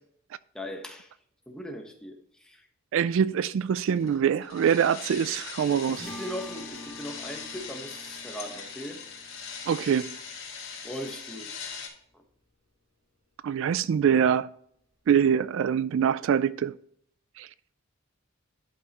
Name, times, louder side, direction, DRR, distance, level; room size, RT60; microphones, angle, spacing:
voice 1, 0.5-1.1 1.5-2.7 5.9-9.0 10.8-11.5, equal, 5° left, 1.2 m, -39 dB
voice 2, 2.9-6.1 9.7-10.1 13.4-14.5 15.1-16.7 17.4-17.5, right 8 dB, 65° right, 0.3 m, -24 dB
sound 1, 3.8-11.9, left 6 dB, 75° left, 2.2 m, -41 dB
sound 2, 6.0-12.5, equal, 85° right, 3.0 m, -47 dB
11.0 x 5.5 x 3.0 m
head